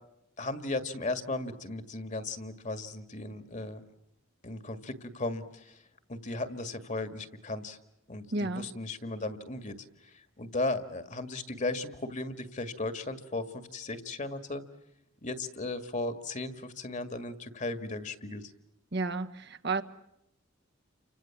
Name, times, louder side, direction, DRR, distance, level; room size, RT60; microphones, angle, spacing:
voice 1, 0.4-3.8 4.4-5.8 6.1-7.8 8.1-9.8 10.0-14.6 15.2-18.5, left 2 dB, 35° left, 10 dB, 2.0 m, -36 dB
voice 2, 8.3-8.7 18.9-19.8, right 3 dB, 55° right, 8 dB, 1.3 m, -31 dB
30.0 x 25.5 x 7.3 m, 0.82 s
head